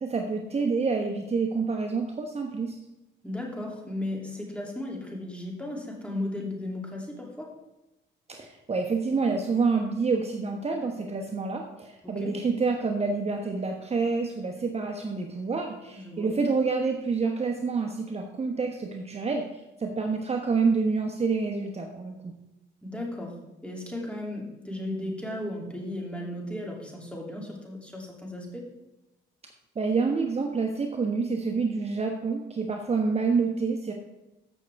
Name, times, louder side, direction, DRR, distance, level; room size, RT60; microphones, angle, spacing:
voice 1, 0.0-2.7 8.3-19.4 19.8-22.2 29.8-33.9, right 4 dB, 30° right, 2 dB, 1.1 m, -27 dB
voice 2, 3.2-7.5 12.0-12.3 15.9-16.3 22.8-28.7, left 1 dB, 5° left, -1 dB, 2.9 m, -35 dB
14.5 x 6.4 x 3.5 m, 0.97 s
cardioid pair, 90°, 20 cm